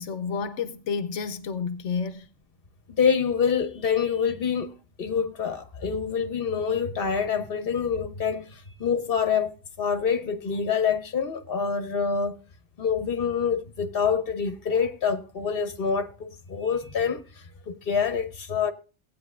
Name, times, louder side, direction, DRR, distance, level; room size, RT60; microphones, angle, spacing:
voice 1, 0.0-2.3, left 5 dB, 85° left, 1.0 m, -30 dB
voice 2, 2.9-4.7 5.0-12.4 12.8-17.2 17.7-18.7, left 6 dB, 55° left, 1.3 m, -26 dB
18.0 x 9.2 x 2.4 m
omnidirectional pair, 1.2 m